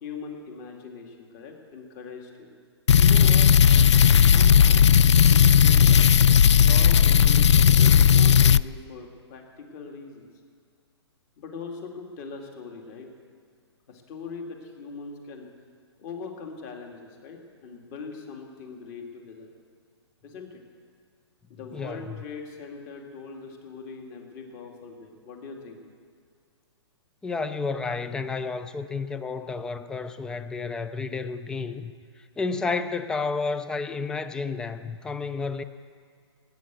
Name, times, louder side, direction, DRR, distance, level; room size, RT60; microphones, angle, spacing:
voice 1, 0.0-2.5 3.0-3.5 4.2-6.1 6.6-10.3 11.4-13.1 13.9-15.5 16.0-19.5 20.2-20.6 21.5-25.8, left 4 dB, 30° left, 2.4 m, -41 dB
sound 1, 2.9-8.6, left 8 dB, 80° left, 0.4 m, -16 dB
voice 2, 21.7-22.1 27.2-31.9 32.2-35.6, left 4 dB, 5° left, 0.3 m, -31 dB
18.5 x 9.2 x 8.3 m
hypercardioid pair, 150°, 15 cm